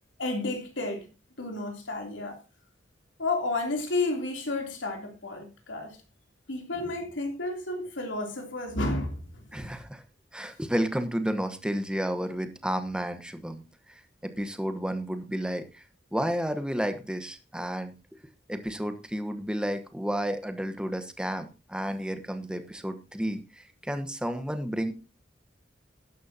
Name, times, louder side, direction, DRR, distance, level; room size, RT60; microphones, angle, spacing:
voice 1, 0.2-1.1 1.4-2.4 3.2-6.0 6.5-9.7, left 2 dB, 90° left, 3.2 m, -31 dB
voice 2, 9.5-10.0 10.3-13.6 13.9-15.8 16.1-17.9 18.5-24.9, equal, 5° right, 1.1 m, -31 dB
12.5 x 10.5 x 2.8 m
head